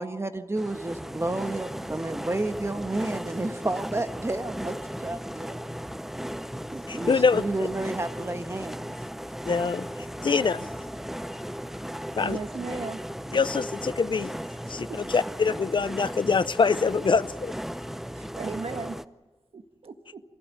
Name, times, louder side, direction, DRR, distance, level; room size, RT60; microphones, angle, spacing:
voice 1, 0.0-4.8 5.0-5.7 6.7-8.9, right 2 dB, 25° right, 1.3 m, -31 dB
sound 1, 0.6-19.0, equal, 5° right, 0.7 m, -36 dB
voice 2, 6.9-7.7 9.4-10.7 12.1-12.4 13.3-14.3 14.7-14.9 15.1-17.5, left 5 dB, 50° left, 0.7 m, -24 dB
voice 3, 12.2-13.0 14.9-15.0 18.1-19.0 19.5-20.2, right 4 dB, 65° right, 1.6 m, -36 dB
24.5 x 16.0 x 9.5 m
wide cardioid pair, 75°, 10 cm